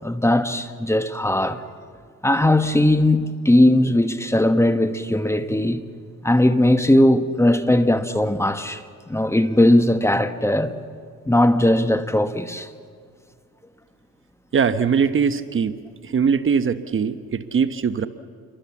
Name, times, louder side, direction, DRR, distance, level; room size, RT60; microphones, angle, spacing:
voice 1, 0.0-1.6 2.2-5.8 6.2-8.8 9.1-10.8 11.3-12.7, left 1 dB, 10° left, 1.3 m, -18 dB
voice 2, 14.5-15.7 16.0-18.1, right 6 dB, 40° right, 1.1 m, -21 dB
28.0 x 23.0 x 7.3 m
cardioid pair, 90°, 30 cm